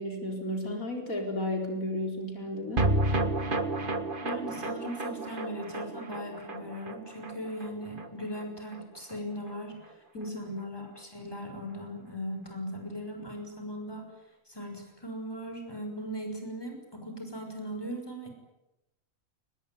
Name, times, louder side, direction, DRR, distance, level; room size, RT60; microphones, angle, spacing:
voice 1, 0.0-2.9 10.1-10.6, left 1 dB, 75° left, 3 dB, 4.9 m, -33 dB
sound 1, 2.8-9.2 9.5-9.6 9.8-9.9, right 2 dB, 40° right, 1.8 m, -32 dB
voice 2, 4.2-14.1 14.5-18.3, equal, 15° left, 4 dB, 6.1 m, -39 dB
24.5 x 21.0 x 9.5 m, 0.92 s
omnidirectional pair, 1.5 m